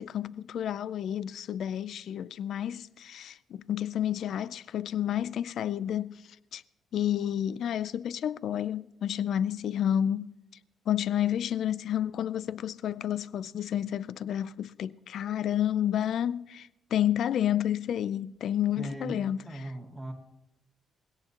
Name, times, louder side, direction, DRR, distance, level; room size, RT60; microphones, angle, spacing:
voice 1, 0.0-6.2 6.5-6.6 6.9-10.3 10.9-19.4, left 10 dB, 70° left, 0.4 m, -30 dB
voice 2, 18.7-20.1, right 1 dB, 10° right, 2.2 m, -39 dB
21.0 x 17.0 x 2.9 m
cardioid pair, 90°, 0 cm